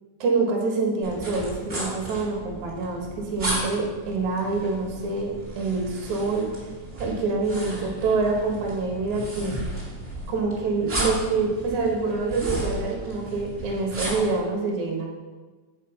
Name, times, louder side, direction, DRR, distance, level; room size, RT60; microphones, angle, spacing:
voice 1, 0.2-6.5 6.9-9.6 10.3-15.1, right 3 dB, 60° right, 1 dB, 2.5 m, -26 dB
sound 1, 1.0-14.4, right 1 dB, 15° right, 2.0 m, -34 dB
7.8 x 6.4 x 5.5 m, 1.3 s
omnidirectional pair, 4.3 m